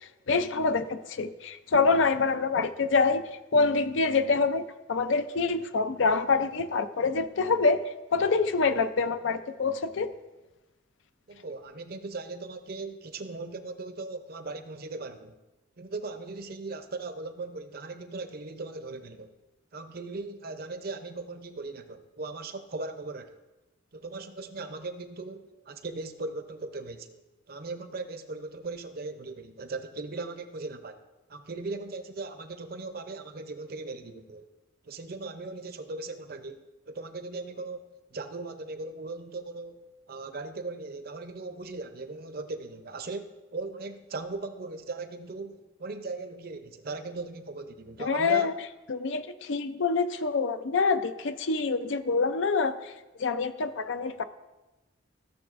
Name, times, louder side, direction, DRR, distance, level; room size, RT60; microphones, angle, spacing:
voice 1, 0.0-3.2 3.5-10.1 48.0-48.5 48.9-52.9 53.2-54.2, left 4 dB, 70° left, 10 dB, 0.5 m, -26 dB
voice 2, 11.3-15.4 15.8-19.3 19.7-23.3 23.9-27.2 27.5-31.0 31.3-34.4 34.8-37.8 38.1-48.5, right 3 dB, 50° right, 9 dB, 0.6 m, -38 dB
15.0 x 6.9 x 2.5 m, 1.1 s
head